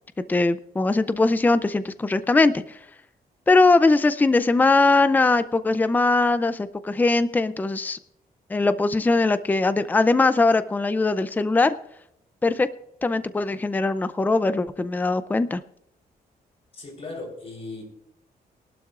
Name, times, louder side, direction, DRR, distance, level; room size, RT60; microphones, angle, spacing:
voice 1, 0.3-2.8 3.5-8.0 8.5-11.7 12.4-12.7 13.0-15.6, left 3 dB, 10° left, 0.4 m, -21 dB
voice 2, 16.7-17.8, left 3 dB, 35° left, 3.8 m, -37 dB
20.5 x 12.0 x 2.4 m
wide cardioid pair, 180°, 16 cm